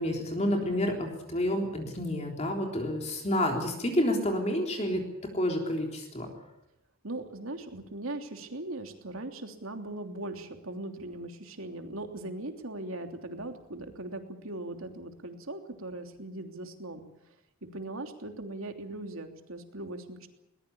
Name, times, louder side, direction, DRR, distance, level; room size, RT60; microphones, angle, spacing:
voice 1, 0.0-6.3, left 1 dB, 30° left, 2 dB, 3.6 m, -29 dB
voice 2, 7.0-17.0 17.6-20.3, right 2 dB, 70° right, 5 dB, 3.1 m, -39 dB
21.5 x 20.5 x 8.6 m, 0.87 s
head